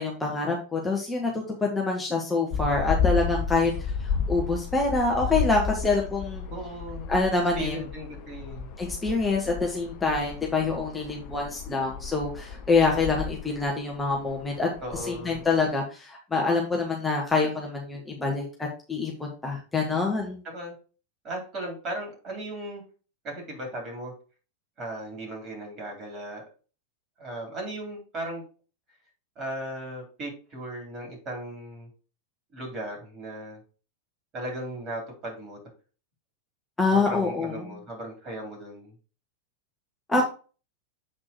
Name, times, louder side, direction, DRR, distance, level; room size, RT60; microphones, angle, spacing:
voice 1, 0.0-3.7 4.0-6.4 7.1-7.8 8.8-20.4 36.8-37.7 40.1-40.2, left 3 dB, 10° left, -1 dB, 1.4 m, -26 dB
sound 1, 2.5-15.7, left 6 dB, 45° left, 0.6 m, -33 dB
voice 2, 6.5-8.7 14.8-15.4 20.4-20.7 21.2-22.8 23.2-24.1 24.8-26.4 27.2-28.4 29.4-31.9 32.5-33.6 34.3-35.6 36.9-38.9, right 1 dB, 30° right, 0 dB, 4.0 m, -37 dB
7.7 x 4.3 x 4.5 m, 0.36 s
figure-of-eight pair, 90°, 0 cm